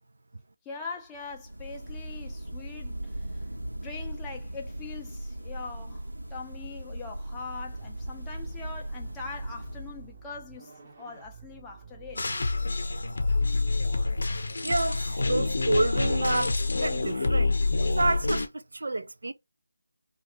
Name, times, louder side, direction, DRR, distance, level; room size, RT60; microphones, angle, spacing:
voice 1, 0.6-3.4 3.8-12.2, left 5 dB, 10° left, 0.5 m, -42 dB
sound 1, 1.2-10.3, right 1 dB, 90° right, 0.9 m, -38 dB
sound 2, 7.7-14.8, right 6 dB, 30° right, 0.8 m, -50 dB
sound 3, 12.2-18.5, left 3 dB, 55° left, 0.6 m, -27 dB
voice 2, 14.6-19.3, right 2 dB, 65° right, 0.4 m, -29 dB
2.7 x 2.4 x 3.2 m
figure-of-eight pair, 165°, 0 cm